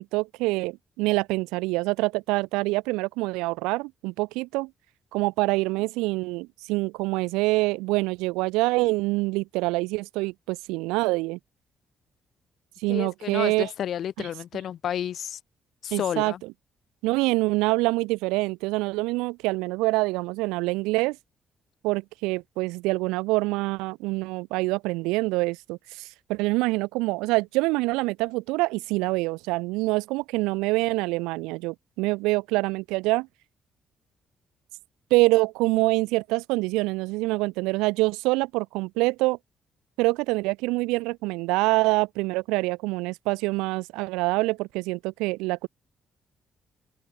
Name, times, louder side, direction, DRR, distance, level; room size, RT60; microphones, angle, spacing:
voice 1, 0.0-4.7 5.1-11.4 12.8-13.7 15.9-16.3 17.0-21.2 21.8-33.3 35.1-39.4 40.0-45.7, right 23 dB, 90° right, 0.8 m, -25 dB
voice 2, 12.9-15.4 15.8-16.4, left 10 dB, 65° left, 2.0 m, -31 dB
open air
supercardioid pair, 55°, 0 cm